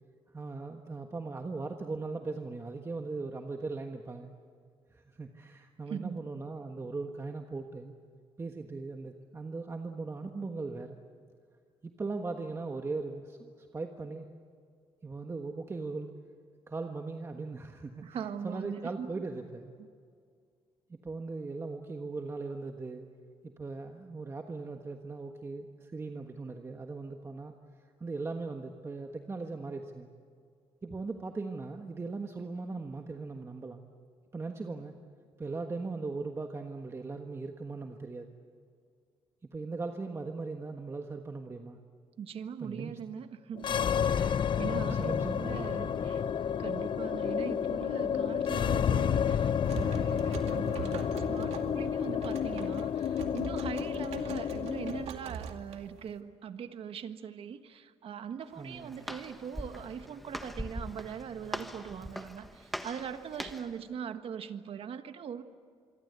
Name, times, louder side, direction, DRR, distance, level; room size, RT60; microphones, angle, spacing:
voice 1, 0.3-4.3 4.9-7.9 8.4-11.0 11.8-14.3 15.0-16.1 16.7-18.0 18.4-19.7 20.9-23.1 23.6-27.5 28.0-30.1 30.8-33.8 34.3-34.9 35.4-38.3 39.5-41.8 42.6-43.0 44.1-46.1 58.6-58.9, right 3 dB, 25° right, 4 dB, 1.4 m, -39 dB
voice 2, 5.9-6.2 18.0-19.2 19.8-19.9 42.2-46.2 46.6-65.4, right 7 dB, 60° right, 9 dB, 1.5 m, -41 dB
sound 1, 43.6-55.1, left 8 dB, 50° left, 0.6 m, -30 dB
sound 2, 49.3-56.2, right 6 dB, 80° right, 2.4 m, -43 dB
Walk footsteps, 58.4-63.8, equal, ahead, 1.3 m, -42 dB
26.5 x 23.5 x 8.2 m, 2.2 s
cardioid pair, 110°, 11 cm